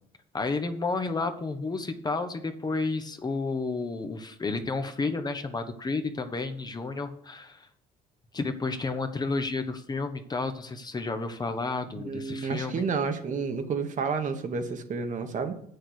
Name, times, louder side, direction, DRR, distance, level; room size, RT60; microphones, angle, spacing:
voice 1, 0.3-7.7 8.3-12.8, left 3 dB, 25° left, 7 dB, 1.0 m, -31 dB
voice 2, 11.9-15.6, right 5 dB, 50° right, 6 dB, 1.4 m, -30 dB
7.8 x 6.6 x 6.4 m, 0.70 s
cardioid pair, 110°, 17 cm